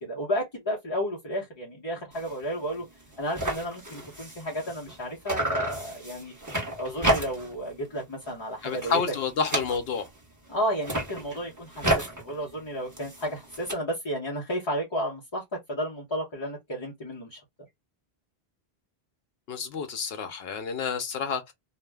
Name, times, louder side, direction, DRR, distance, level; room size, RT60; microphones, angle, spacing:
voice 1, 0.0-2.8 3.2-6.3 6.8-9.0 10.5-17.4, equal, 30° left, 0.6 m, -32 dB
sound 1, 2.1-2.4 2.7-2.8 3.0-5.0 5.3-7.6 8.0-8.3 8.6-10.2 10.7-13.7, right 1 dB, 20° right, 1.0 m, -31 dB
voice 2, 8.6-10.0 19.5-21.5, left 5 dB, 70° left, 0.8 m, -29 dB
2.4 x 2.1 x 3.2 m
omnidirectional pair, 1.1 m